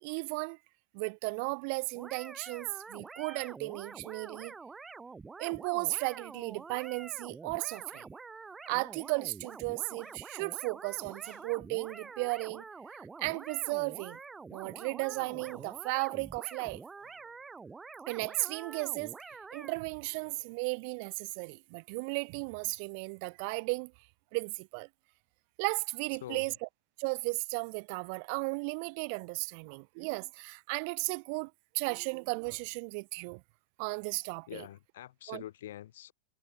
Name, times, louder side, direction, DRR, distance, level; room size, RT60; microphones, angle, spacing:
voice 1, 0.0-0.6 0.9-4.6 5.4-8.1 8.7-12.6 13.2-14.2 14.5-17.1 18.1-19.2 19.5-23.9 24.3-24.9 25.6-26.5 27.0-33.4 33.8-34.5 35.3-35.4, right 35 dB, 45° right, 0.3 m, -35 dB
sound 1, 1.9-19.8, right 4 dB, 15° right, 1.0 m, -47 dB
voice 2, 26.2-26.6 34.5-36.1, left 12 dB, 60° left, 1.3 m, -45 dB
figure-of-eight pair, 90°, 0 cm